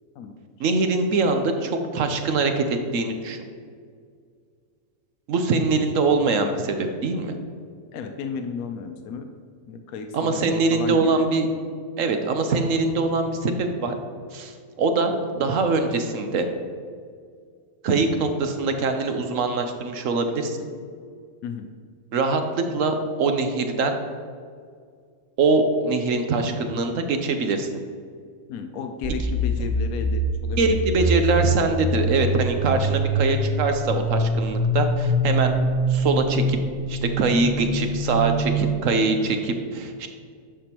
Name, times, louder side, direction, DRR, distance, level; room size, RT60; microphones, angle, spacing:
voice 1, 0.6-3.4 5.3-7.3 10.1-11.5 12.0-14.0 14.3-16.4 17.8-20.6 22.1-23.9 25.4-27.7 30.6-35.6 35.9-36.6 36.9-40.1, right 3 dB, 65° right, 6 dB, 1.1 m, -23 dB
voice 2, 7.9-9.3 9.7-11.3 21.4-21.7 28.5-30.7 32.7-32.9, left 5 dB, 80° left, 6 dB, 1.1 m, -33 dB
sound 1, 29.0-38.8, equal, 5° right, 0.7 m, -24 dB
10.5 x 6.9 x 2.9 m, 2.1 s
omnidirectional pair, 1.5 m